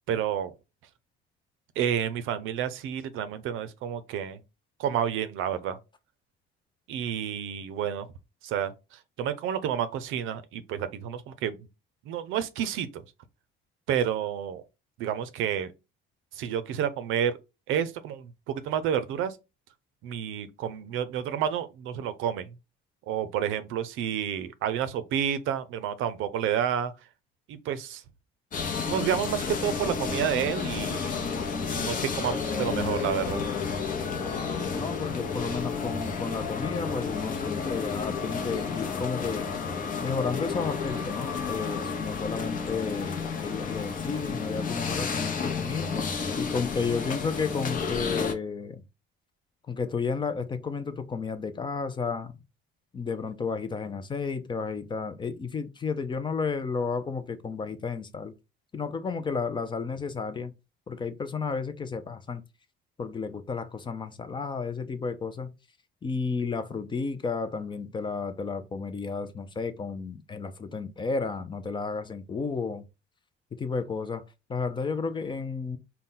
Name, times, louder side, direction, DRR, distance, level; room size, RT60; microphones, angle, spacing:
voice 1, 0.1-0.5 1.8-4.4 4.8-5.8 6.9-8.1 8.4-11.6 12.1-13.0 13.9-14.6 15.0-15.7 16.3-17.4 17.7-19.4 20.0-22.5 23.1-26.9 27.5-28.0 28.9-31.1 31.8-33.4, right 9 dB, 75° right, 0.5 m, -30 dB
sound 1, 28.5-48.3, left 5 dB, 40° left, 0.8 m, -31 dB
voice 2, 34.2-39.5 40.0-45.9 46.4-48.8 49.7-52.3 52.9-58.3 58.7-60.5 60.9-62.4 63.0-65.5 66.0-72.8 73.6-74.2 74.5-75.8, left 5 dB, 20° left, 0.4 m, -32 dB
4.0 x 2.2 x 3.7 m
cardioid pair, 125°, 21 cm